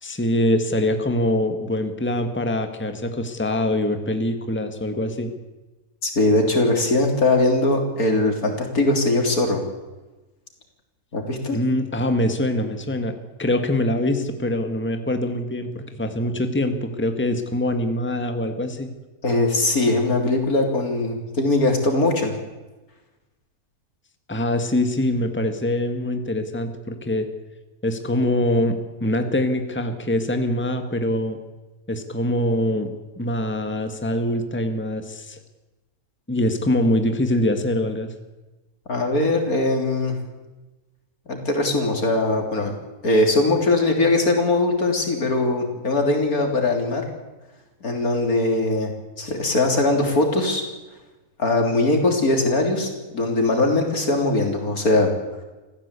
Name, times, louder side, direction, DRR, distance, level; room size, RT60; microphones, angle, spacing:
voice 1, 0.0-5.3 11.5-18.9 24.3-27.3 27.8-31.4 31.9-35.4 36.3-38.1, left 1 dB, 10° left, 7 dB, 1.7 m, -24 dB
voice 2, 6.0-9.6 11.1-11.6 19.2-22.3 38.9-40.2 41.3-42.7 43.0-47.0 47.8-48.9 49.2-50.6 51.4-55.1, left 2 dB, 80° left, 3 dB, 3.9 m, -21 dB
26.0 x 15.5 x 8.3 m, 1.2 s
omnidirectional pair, 1.5 m